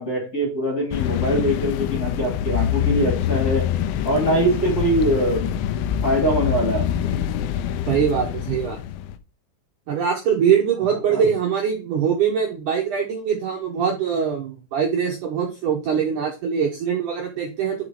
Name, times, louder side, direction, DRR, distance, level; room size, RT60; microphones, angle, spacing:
voice 1, 0.0-3.6 4.0-5.5 6.0-7.1 11.1-11.2, equal, 25° left, -2 dB, 2.5 m, -23 dB
sound 1, 0.9-9.2, left 10 dB, 80° left, 2.1 m, -25 dB
voice 2, 7.9-8.8 9.9-17.9, right 7 dB, 65° right, 0 dB, 2.1 m, -22 dB
5.8 x 5.1 x 4.9 m, 0.31 s
omnidirectional pair, 4.8 m